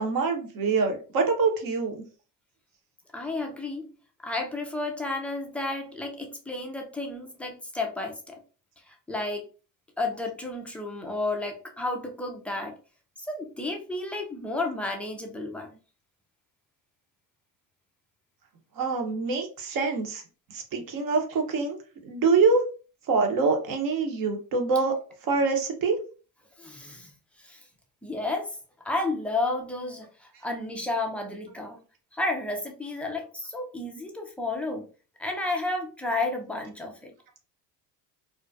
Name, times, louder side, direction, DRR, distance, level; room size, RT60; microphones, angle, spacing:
voice 1, 0.0-2.0 18.8-20.2 20.5-21.8 22.0-22.6 23.1-25.0 25.3-26.0, right 4 dB, 45° right, 0.8 m, -25 dB
voice 2, 3.1-4.0 4.2-8.4 8.9-9.4 10.0-12.8 13.3-15.8 26.6-27.1 27.4-27.6 28.0-28.5 28.8-31.8 32.1-34.9 35.2-37.1, left 2 dB, 5° left, 0.3 m, -32 dB
2.3 x 2.2 x 2.5 m
hypercardioid pair, 80°, 47 cm